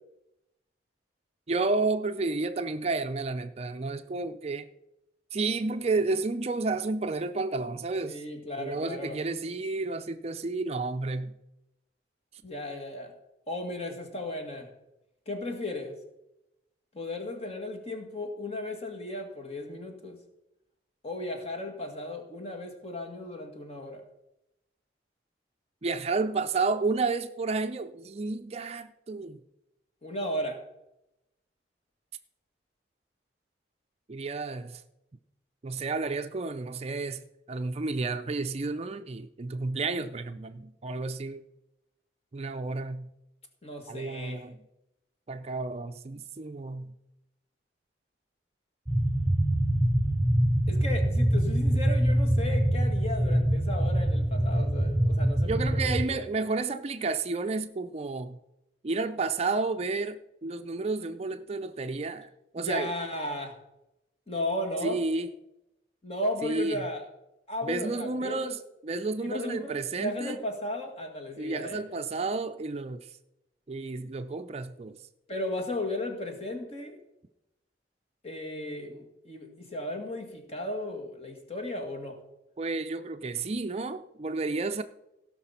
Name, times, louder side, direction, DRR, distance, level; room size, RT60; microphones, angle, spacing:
voice 1, 1.5-4.7 5.3-8.2 8.6-11.4 25.8-29.4 34.1-34.8 35.6-37.2 37.5-41.4 42.3-43.1 43.9-44.6 45.3-46.9 55.4-58.4 58.8-62.3 62.5-62.9 64.8-65.3 66.4-66.8 67.6-70.4 71.4-73.1 73.7-75.0 82.6-84.8, right 3 dB, 35° right, 0.4 m, -31 dB
voice 2, 8.1-9.2 12.4-13.1 13.5-14.7 15.3-16.0 16.9-20.2 21.0-24.0 30.0-30.7 43.6-44.5 50.7-56.2 62.6-63.6 64.3-65.0 66.0-67.1 67.5-68.5 69.2-71.8 75.3-77.0 78.2-82.2, left 1 dB, 35° left, 1.9 m, -35 dB
sound 1, 48.9-56.0, right 1 dB, 5° right, 0.8 m, -24 dB
16.5 x 5.9 x 5.7 m
head